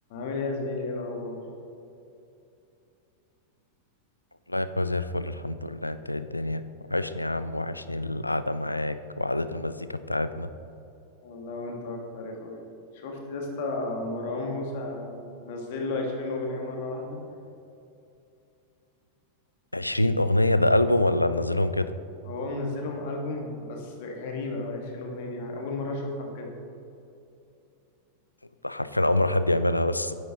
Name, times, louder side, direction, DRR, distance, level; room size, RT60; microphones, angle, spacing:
voice 1, 0.1-1.4 11.2-12.6 12.9-17.2 22.2-26.5, left 2 dB, 50° left, 1 dB, 1.5 m, -33 dB
voice 2, 4.5-6.6 6.9-10.5 19.7-21.9 28.6-30.1, left 1 dB, 85° left, 13 dB, 0.3 m, -26 dB
9.1 x 9.1 x 2.9 m, 2.7 s
figure-of-eight pair, 90°, 0 cm